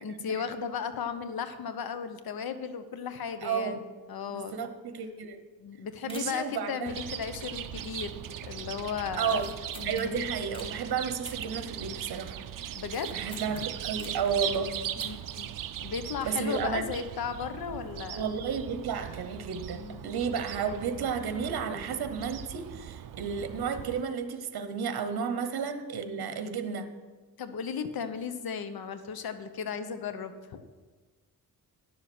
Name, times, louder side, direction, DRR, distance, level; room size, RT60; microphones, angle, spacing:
voice 1, 0.0-3.8 4.1-4.6 5.6-9.4 9.8-10.2 12.7-13.1 13.4-13.7 15.0-15.5 15.8-18.3 19.7-20.2 25.9-26.3 27.4-30.6, left 7 dB, 70° left, 10 dB, 0.9 m, -36 dB
voice 2, 3.4-3.8 4.3-5.4 6.0-6.9 9.2-9.5 9.8-12.4 13.1-14.8 16.2-16.8 18.2-26.9, right 6 dB, 75° right, 9 dB, 1.0 m, -32 dB
sound 1, 5.3-5.4 5.6-5.7 6.1-6.5 7.0-7.5 7.8-8.2 8.5-8.6 9.2-10.7 11.2-12.2 12.5-14.3 14.8-15.4 15.7-15.8, equal, 15° left, 1.6 m, -49 dB
Chirp tweet, 6.9-24.0, right 10 dB, 60° right, 0.5 m, -39 dB
10.5 x 7.2 x 6.1 m, 1.4 s
cardioid pair, 100°, 37 cm